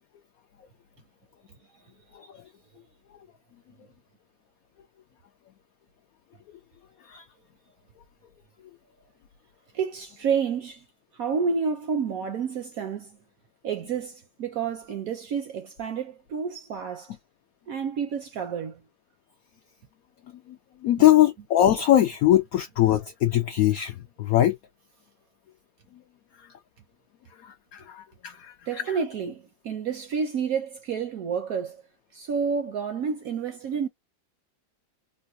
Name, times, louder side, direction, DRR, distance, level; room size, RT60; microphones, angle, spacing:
voice 1, 9.7-10.8 11.1-13.2 13.6-17.2 17.7-18.8 21.0-21.1 28.7-31.8 32.1-33.9, right 6 dB, 70° right, 0.8 m, -29 dB
voice 2, 20.8-24.6 27.4-28.5, left 13 dB, 80° left, 0.7 m, -21 dB
3.9 x 2.2 x 2.6 m
omnidirectional pair, 2.0 m